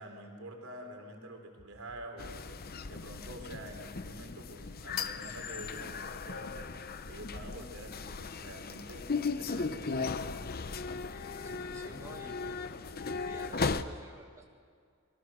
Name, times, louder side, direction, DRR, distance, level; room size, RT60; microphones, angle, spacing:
voice 1, 0.0-6.7 7.1-10.4, right 1 dB, 85° right, 3 dB, 3.5 m, -47 dB
sound 1, 1.6-3.2 3.6-5.0 5.3-10.4 10.7-11.9, left 1 dB, 90° left, 4.9 m, -64 dB
sound 2, 2.2-13.8, left 4 dB, 45° left, 0.8 m, -37 dB
voice 2, 11.4-12.6 13.1-14.4, right 1 dB, 15° right, 1 dB, 1.9 m, -51 dB
27.5 x 22.0 x 6.5 m, 2.2 s
head